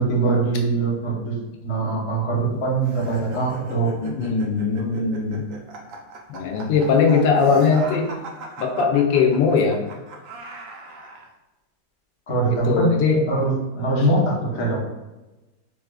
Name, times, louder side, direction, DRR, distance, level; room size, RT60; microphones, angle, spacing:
voice 1, 0.0-1.3 1.6-3.9 12.3-12.9 13.3-14.8, right 3 dB, 45° left, -5 dB, 0.3 m, -22 dB
sound 1, 2.8-11.3, right 2 dB, 80° right, 0.7 m, -38 dB
voice 2, 4.0-5.4 6.3-8.1 8.6-9.8 12.7-13.2, left 5 dB, 80° left, 2 dB, 1.3 m, -20 dB
4.7 x 2.4 x 2.2 m, 1.1 s
omnidirectional pair, 2.0 m